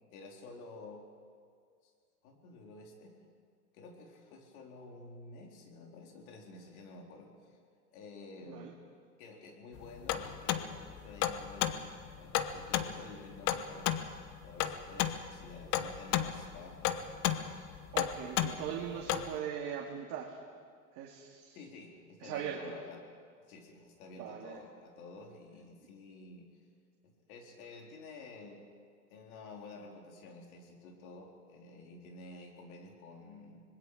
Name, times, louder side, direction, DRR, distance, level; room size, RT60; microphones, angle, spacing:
voice 1, 0.1-1.0 1.8-1.9 2.2-3.2 3.7-7.6 7.9-8.7 9.2-13.9 14.4-17.7 21.5-23.0 23.5-26.5 27.0-28.6 29.1-33.6, left 3 dB, 60° left, 1 dB, 4.1 m, -51 dB
sound 1, 9.8-19.4, left 11 dB, 35° left, 1.1 m, -34 dB
voice 2, 17.9-20.4 20.9-21.6 22.2-22.8 24.1-24.6, right 8 dB, 45° right, -1 dB, 2.4 m, -40 dB
25.5 x 20.5 x 4.9 m, 2.1 s
hypercardioid pair, 115°, 48 cm